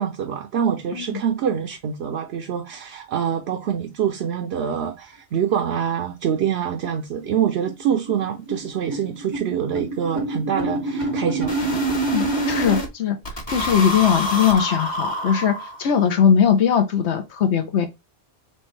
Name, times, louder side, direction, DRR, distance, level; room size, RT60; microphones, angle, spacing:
voice 1, 0.0-11.5, right 8 dB, 75° right, 0.9 m, -25 dB
voice 2, 0.9-1.2 12.1-13.2 13.5-15.5 15.8-17.9, left 8 dB, 90° left, 1.1 m, -20 dB
sound 1, 6.0-6.1 6.4-6.5 6.8-6.9 7.2-7.4 7.7-12.9 13.2-16.0, right 1 dB, 45° left, 1.4 m, -26 dB
4.4 x 3.1 x 3.2 m
omnidirectional pair, 1.1 m